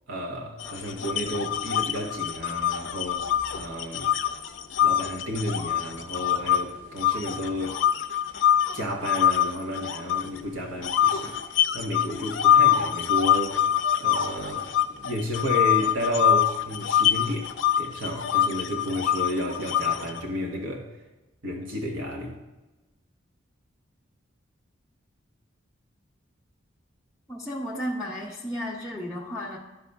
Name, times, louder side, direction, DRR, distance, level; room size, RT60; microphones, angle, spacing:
voice 1, 0.1-4.1 4.8-7.8 8.3-8.5 8.7-13.6 14.0-20.9 21.4-22.4, equal, 70° right, 0 dB, 1.1 m, -32 dB
sound 1, 0.6-6.6 7.0-10.4 10.8-20.2, left 10 dB, 65° left, 0.5 m, -24 dB
voice 2, 27.3-29.6, equal, ahead, -8 dB, 0.7 m, -33 dB
12.0 x 5.4 x 3.4 m, 1.1 s
head